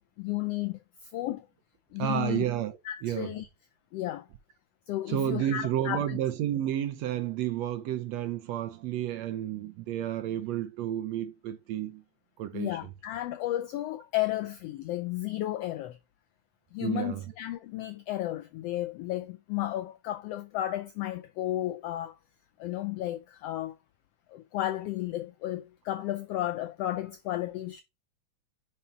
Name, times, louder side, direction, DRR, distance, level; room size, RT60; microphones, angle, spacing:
voice 1, 0.2-1.5 1.9-2.5 2.8-3.5 3.9-4.3 4.9-6.2 12.5-16.0 16.7-22.2 22.6-23.8 24.3-27.8, left 14 dB, 90° left, 1.4 m, -33 dB
voice 2, 2.0-3.3 5.1-12.0 12.4-12.9 16.8-17.2, right 11 dB, 75° right, 1.7 m, -31 dB
5.6 x 5.0 x 4.3 m
omnidirectional pair, 3.4 m